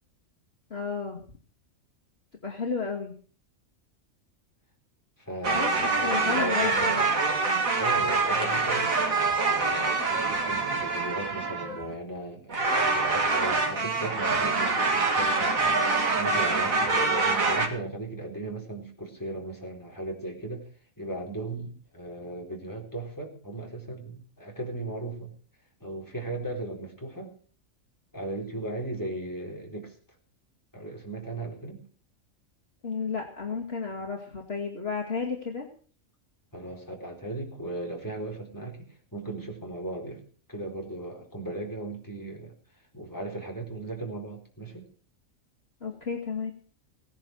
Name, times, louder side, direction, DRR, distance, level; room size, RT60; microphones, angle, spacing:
voice 1, 0.7-1.2 2.4-3.1 5.5-5.7 6.0-7.1 32.8-35.7 45.8-46.5, left 5 dB, 50° left, 0 dB, 2.5 m, -32 dB
voice 2, 5.2-7.2 7.8-9.0 9.4-15.6 16.2-20.7 21.0-25.3 25.8-27.3 28.1-30.0 30.7-31.8 36.5-38.8 39.1-40.2 40.5-42.5 42.9-44.9, right 2 dB, 15° left, 0 dB, 4.1 m, -37 dB
sound 1, 5.4-11.9 12.5-17.7, right 3 dB, 90° right, 2.6 m, -25 dB
17.5 x 10.5 x 6.4 m, 0.44 s
omnidirectional pair, 1.4 m